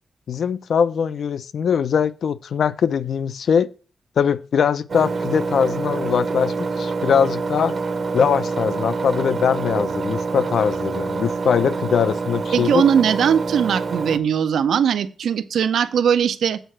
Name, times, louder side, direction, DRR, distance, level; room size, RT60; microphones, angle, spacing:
voice 1, 0.3-3.7 4.2-7.8 8.1-12.8, left 7 dB, 60° left, 0.4 m, -21 dB
Engine, 4.9-14.2, right 4 dB, 35° right, 0.7 m, -26 dB
voice 2, 12.5-16.6, right 8 dB, 85° right, 0.6 m, -19 dB
8.0 x 5.5 x 6.0 m
wide cardioid pair, 165°, 0 cm